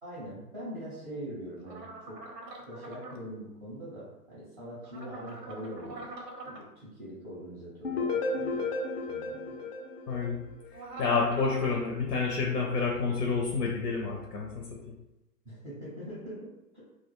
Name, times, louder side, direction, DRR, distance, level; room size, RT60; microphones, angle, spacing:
voice 1, 0.0-2.2 2.7-6.1 6.4-8.7 9.1-9.6 15.4-16.5 16.7-16.8, equal, 10° right, -9 dB, 0.5 m, -42 dB
sound 1, 1.7-3.2 4.8-6.6 10.7-11.8, right 2 dB, 85° right, 0.7 m, -43 dB
sound 2, 7.8-10.8, left 3 dB, 40° left, 0.5 m, -33 dB
voice 2, 10.1-10.4 11.0-14.9, left 4 dB, 85° left, -1 dB, 0.7 m, -29 dB
2.1 x 2.1 x 3.0 m, 0.92 s
hypercardioid pair, 120°, 48 cm